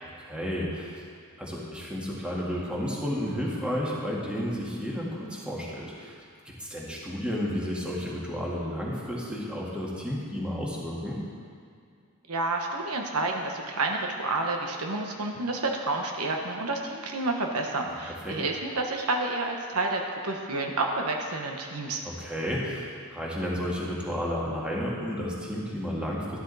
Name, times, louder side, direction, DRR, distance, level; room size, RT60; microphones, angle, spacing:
voice 1, 0.0-1.0 1.4-11.2 17.9-18.4 22.0-26.4, equal, 5° right, -5 dB, 1.9 m, -32 dB
voice 2, 12.3-22.0, right 2 dB, 85° right, 2 dB, 1.2 m, -29 dB
12.5 x 12.0 x 4.1 m, 2.2 s
head